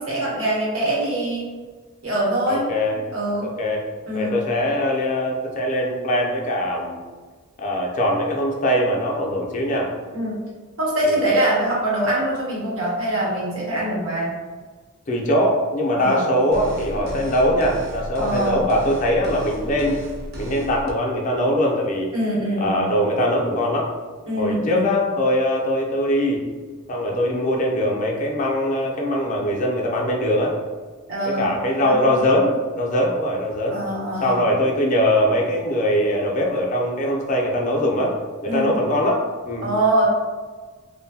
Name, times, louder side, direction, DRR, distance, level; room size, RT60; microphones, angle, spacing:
voice 1, 0.0-1.5 2.0-2.7 3.1-3.5 4.1-4.4 10.1-10.4 10.8-14.3 15.9-16.2 18.2-18.7 22.1-22.8 24.3-24.9 31.1-31.5 31.8-32.1 33.7-34.4 38.4-38.7 39.6-40.0, right 1 dB, 70° right, -6 dB, 1.0 m, -23 dB
voice 2, 2.5-3.0 3.4-3.8 4.1-7.0 7.6-9.9 11.0-11.3 15.1-20.0 20.4-22.1 22.6-23.9 24.4-26.4 26.9-30.5 31.3-33.8 34.2-38.1 38.4-39.7, equal, 35° left, -1 dB, 0.4 m, -21 dB
sound 1, 16.5-20.9, right 1 dB, 50° right, 0.4 m, -34 dB
2.6 x 2.1 x 2.6 m, 1.4 s
head